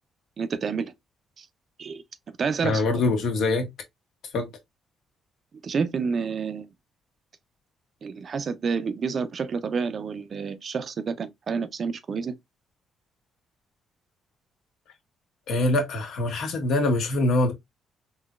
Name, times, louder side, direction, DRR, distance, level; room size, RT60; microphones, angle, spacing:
voice 1, 0.4-0.9 1.4-1.5 1.8-2.8 5.6-6.7 8.0-12.3, right 5 dB, 50° right, 0.6 m, -29 dB
voice 2, 2.6-3.7 4.3-4.5 15.5-17.5, left 2 dB, 75° left, 1.3 m, -24 dB
3.9 x 3.0 x 2.4 m
cardioid pair, 90°, 0 cm